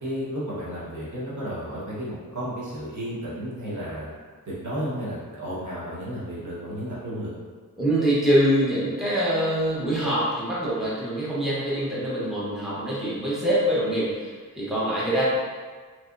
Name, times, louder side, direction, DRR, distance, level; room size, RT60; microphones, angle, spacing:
voice 1, 0.0-4.1 4.4-7.3, equal, 60° right, -8 dB, 1.2 m, -33 dB
voice 2, 7.8-15.2, equal, ahead, -9 dB, 1.0 m, -24 dB
3.4 x 3.3 x 2.6 m, 1.5 s
wide cardioid pair, 85°, 34 cm